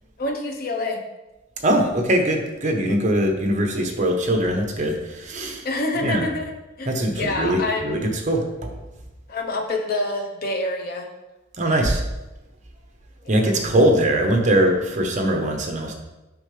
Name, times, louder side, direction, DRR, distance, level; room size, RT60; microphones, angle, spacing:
voice 1, 0.2-1.0 5.6-6.5 6.8-8.0 9.3-11.1 13.2-13.7, left 2 dB, 50° left, 3 dB, 0.9 m, -27 dB
voice 2, 1.6-5.6 6.0-6.3 6.9-8.7 11.6-12.0 13.3-15.9, right 1 dB, 40° right, 3 dB, 1.0 m, -21 dB
7.2 x 5.7 x 3.3 m, 1.0 s
head